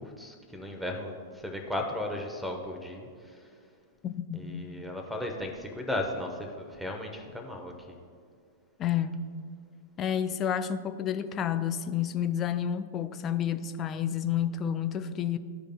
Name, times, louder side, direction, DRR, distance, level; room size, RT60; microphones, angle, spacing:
voice 1, 0.0-3.1 4.3-8.0, left 1 dB, ahead, 2 dB, 1.0 m, -35 dB
voice 2, 4.0-4.7 8.8-9.2 10.0-15.4, left 9 dB, 25° left, 10 dB, 0.4 m, -30 dB
14.5 x 5.0 x 2.3 m, 2.1 s
figure-of-eight pair, 100°, 0 cm